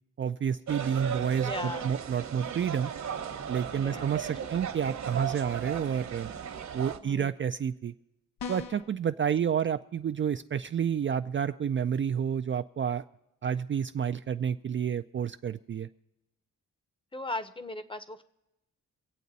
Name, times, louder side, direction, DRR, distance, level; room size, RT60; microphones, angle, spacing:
voice 1, 0.2-2.9 3.5-6.3 6.7-7.9 8.5-13.0 13.4-15.9, right 8 dB, 40° right, 9 dB, 0.4 m, -30 dB
sound 1, 0.7-7.0, right 8 dB, 60° right, 1.1 m, -36 dB
voice 2, 1.4-1.9 3.7-4.1 4.4-4.5 6.9-7.3 17.1-18.2, left 2 dB, 15° left, 12 dB, 0.8 m, -38 dB
sound 2, 8.4-9.0, left 5 dB, 90° left, 0.9 m, -38 dB
24.5 x 8.3 x 4.1 m, 0.95 s
wide cardioid pair, 115°, 32 cm